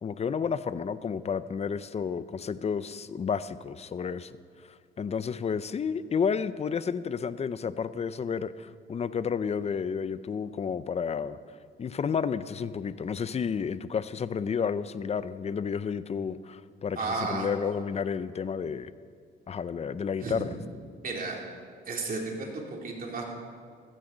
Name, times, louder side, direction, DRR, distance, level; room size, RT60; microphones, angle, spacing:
voice 1, 0.0-4.3 5.0-11.4 11.8-18.9 19.5-20.6, left 6 dB, 35° left, 15 dB, 0.5 m, -31 dB
voice 2, 17.0-17.5 20.2-20.4 21.0-21.4 21.9-23.3, right 3 dB, 45° right, 0 dB, 3.0 m, -33 dB
15.5 x 14.0 x 3.9 m, 2.2 s
cardioid pair, 90°, 20 cm